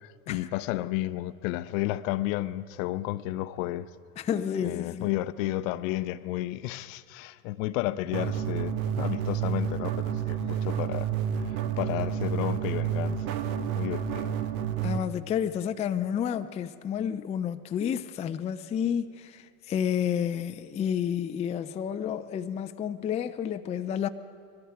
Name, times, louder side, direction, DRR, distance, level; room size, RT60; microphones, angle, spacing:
voice 1, 0.0-3.9 4.6-11.1 11.4-13.4 13.7-14.3, left 16 dB, 65° left, 0.7 m, -32 dB
voice 2, 4.2-5.1 14.8-24.1, left 8 dB, 15° left, 0.3 m, -30 dB
sound 1, 8.1-15.0, right 9 dB, 75° right, 1.1 m, -30 dB
21.0 x 14.0 x 4.8 m
hypercardioid pair, 100°, 42 cm